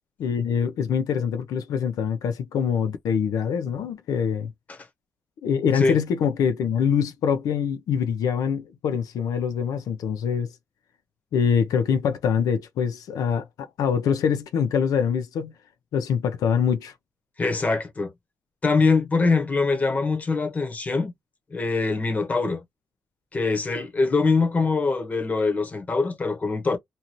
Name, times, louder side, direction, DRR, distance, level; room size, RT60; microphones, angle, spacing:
voice 1, 0.2-4.5 5.4-10.5 11.3-15.5 15.9-16.9, left 7 dB, 85° left, 0.5 m, -24 dB
voice 2, 17.4-18.1 18.6-21.1 21.5-22.6 23.3-26.8, left 4 dB, 25° left, 0.9 m, -23 dB
2.7 x 2.5 x 2.9 m
wide cardioid pair, 150°, 6 cm